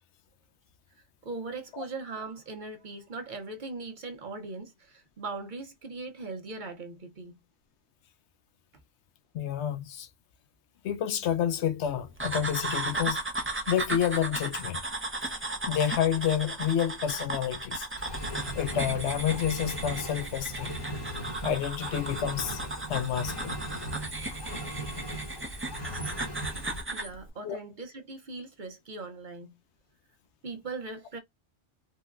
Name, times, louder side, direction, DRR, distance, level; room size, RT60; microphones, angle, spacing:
voice 1, 1.2-7.3 26.9-29.6 30.4-31.2, right 3 dB, 55° right, 0.7 m, -39 dB
voice 2, 9.3-10.1 10.8-13.2 13.7-14.8 15.7-17.9 18.5-20.7 21.4-22.6 22.9-23.6 27.4-27.6, left 9 dB, 75° left, 0.8 m, -29 dB
sound 1, 12.2-27.1, right 2 dB, 20° right, 0.4 m, -36 dB
Engine, 18.0-26.8, right 1 dB, 25° left, 0.8 m, -38 dB
3.7 x 2.1 x 2.3 m
omnidirectional pair, 1.2 m